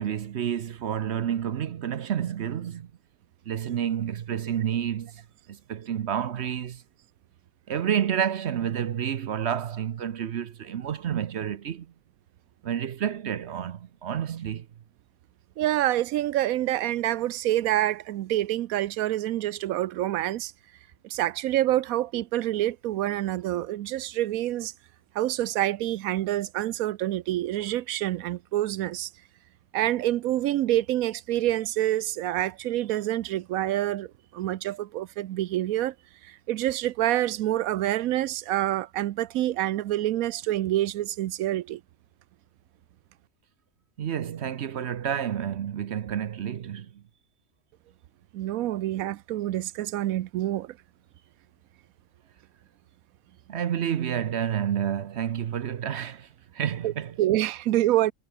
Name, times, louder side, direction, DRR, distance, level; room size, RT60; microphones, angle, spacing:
voice 1, 0.0-2.9 3.5-5.2 5.5-6.8 7.7-11.9 12.6-14.7 44.0-47.0 53.5-57.2, right 9 dB, 60° right, 0.9 m, -29 dB
voice 2, 15.6-20.5 21.1-24.7 25.1-29.1 29.7-35.9 36.2-41.8 48.3-50.8 56.8-56.9 57.2-58.1, right 14 dB, 85° right, 1.1 m, -27 dB
omnidirectional pair, 1.4 m